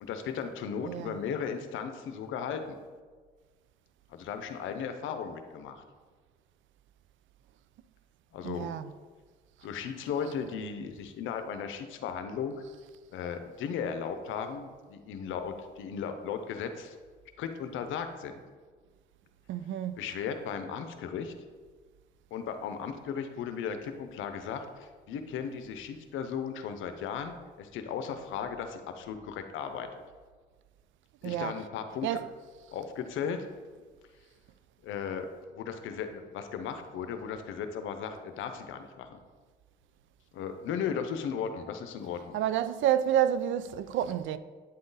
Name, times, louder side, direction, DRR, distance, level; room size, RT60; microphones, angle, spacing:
voice 1, 0.0-2.8 4.1-5.8 8.3-8.7 9.6-12.6 13.1-17.0 17.4-18.3 20.0-21.3 22.3-29.9 31.2-32.2 32.7-33.5 34.8-39.2 40.3-42.4, left 7 dB, 85° left, 0.7 m, -36 dB
voice 2, 8.4-8.9 19.5-20.0 31.2-31.5 32.0-32.3 42.3-44.4, right 10 dB, 75° right, 0.4 m, -29 dB
8.7 x 3.8 x 4.0 m
cardioid pair, 90°, 20 cm